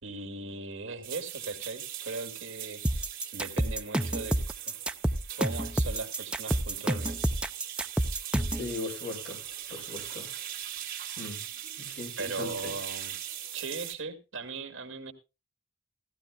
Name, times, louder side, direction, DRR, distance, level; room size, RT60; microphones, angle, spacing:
voice 1, 0.0-3.0 3.3-4.4 4.7-4.8 5.4-7.2 12.2-13.2 13.5-15.1, right 3 dB, 65° right, 2.1 m, -38 dB
sound 1, 1.0-13.9, right 11 dB, 45° right, 2.5 m, -40 dB
sound 2, 2.8-8.7, right 1 dB, 5° right, 0.5 m, -28 dB
voice 2, 8.5-9.4 9.7-10.3 11.2-11.4 11.8-12.7, left 3 dB, 55° left, 6.5 m, -38 dB
16.5 x 15.0 x 2.2 m
head